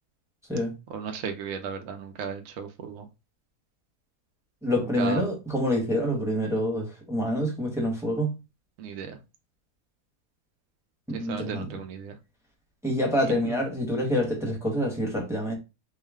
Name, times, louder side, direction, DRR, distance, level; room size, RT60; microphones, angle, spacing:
voice 1, 0.9-3.0 5.0-5.2 8.8-9.2 11.1-12.1 13.3-13.4, right 6 dB, 65° right, 0.9 m, -35 dB
voice 2, 4.6-8.3 11.1-11.8 12.8-15.5, equal, ahead, 0.9 m, -27 dB
4.5 x 2.1 x 3.5 m
omnidirectional pair, 1.7 m